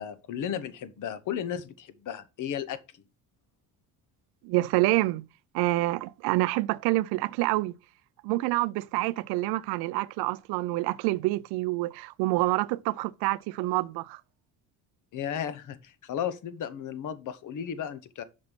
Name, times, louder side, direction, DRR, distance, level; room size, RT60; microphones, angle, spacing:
voice 1, 0.0-2.8 15.1-18.2, left 9 dB, 55° left, 0.9 m, -34 dB
voice 2, 4.4-5.3 5.5-7.7 8.2-14.2, right 19 dB, 85° right, 0.5 m, -27 dB
5.4 x 5.3 x 6.1 m
cardioid pair, 115°, 38 cm